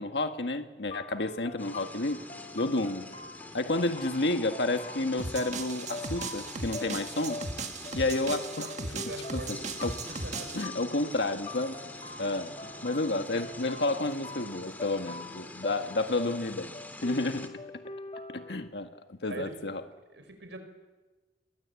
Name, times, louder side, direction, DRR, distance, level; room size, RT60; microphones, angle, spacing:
voice 1, 0.0-2.2 2.5-3.1 3.5-7.4 8.0-9.9 10.5-11.8 12.2-16.7 17.0-17.5 18.3-19.8, left 2 dB, 70° left, 7 dB, 1.7 m, -31 dB
sound 1, 0.9-18.7, left 3 dB, 35° left, 1.7 m, -44 dB
sound 2, 1.6-17.5, left 2 dB, 10° left, 2.5 m, -45 dB
sound 3, 5.2-10.7, right 3 dB, 45° right, 1.8 m, -38 dB
voice 2, 8.9-9.6 10.2-10.5 19.3-19.5 20.1-20.6, right 2 dB, 90° right, 7 dB, 5.5 m, -42 dB
28.0 x 21.5 x 8.5 m, 1.2 s
head